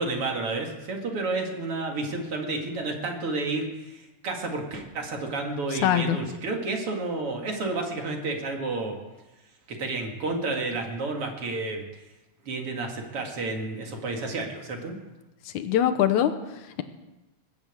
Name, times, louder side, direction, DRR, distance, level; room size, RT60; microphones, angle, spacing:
voice 1, 0.0-9.0 9.7-11.8 12.5-15.0, right 3 dB, 50° right, 2 dB, 2.8 m, -31 dB
voice 2, 5.7-6.2 15.5-16.8, left 10 dB, 80° left, 8 dB, 2.3 m, -24 dB
20.0 x 8.9 x 8.0 m, 1.1 s
omnidirectional pair, 3.4 m